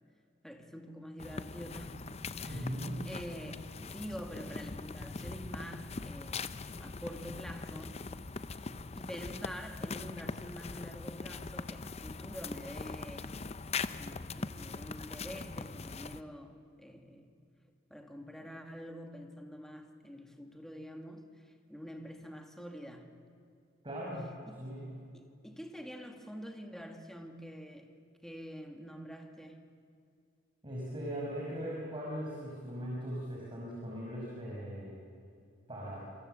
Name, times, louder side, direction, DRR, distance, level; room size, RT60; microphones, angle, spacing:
voice 1, 0.4-2.1 2.4-2.7 3.0-8.1 8.5-8.7 8.9-13.3 14.0-17.4 17.9-23.1 24.5-24.6 25.1-28.0 28.2-29.7, equal, ahead, 2.1 m, -46 dB
sound 1, 1.2-16.2, left 4 dB, 30° left, 0.6 m, -41 dB
voice 2, 2.4-3.0 23.8-24.3 24.6-24.9 30.6-34.9 35.7-36.0, equal, 25° right, 5.7 m, -39 dB
27.5 x 27.0 x 7.9 m
head